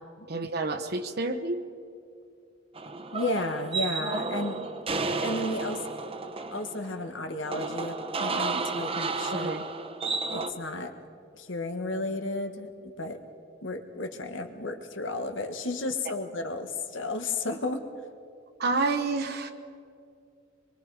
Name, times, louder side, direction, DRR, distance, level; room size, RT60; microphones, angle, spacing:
voice 1, 0.3-1.6 9.3-9.6 18.6-19.5, right 3 dB, 55° right, 4 dB, 1.0 m, -29 dB
sound 1, 2.8-10.5, right 4 dB, 30° right, 0.9 m, -32 dB
voice 2, 3.1-4.6 5.2-5.8 6.5-9.5 10.3-10.9 11.3-12.7 13.0-13.2 13.6-17.8, left 2 dB, 75° left, 6 dB, 1.5 m, -33 dB
25.0 x 22.5 x 4.8 m, 2.5 s
head